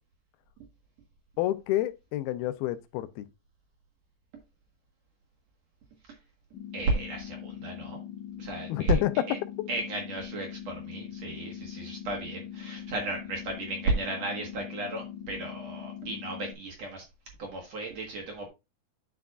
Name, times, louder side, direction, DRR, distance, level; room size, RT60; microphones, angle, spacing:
voice 1, 1.4-3.3 8.7-9.3 9.6-9.7, left 14 dB, 85° left, 2.4 m, -29 dB
sound 1, 6.5-16.5, left 10 dB, 65° left, 1.9 m, -42 dB
voice 2, 6.7-8.0 8.4-9.0 9.3-9.4 9.7-17.0 17.4-18.5, right 2 dB, 55° right, 2.0 m, -33 dB
9.4 x 5.9 x 2.4 m
omnidirectional pair, 4.5 m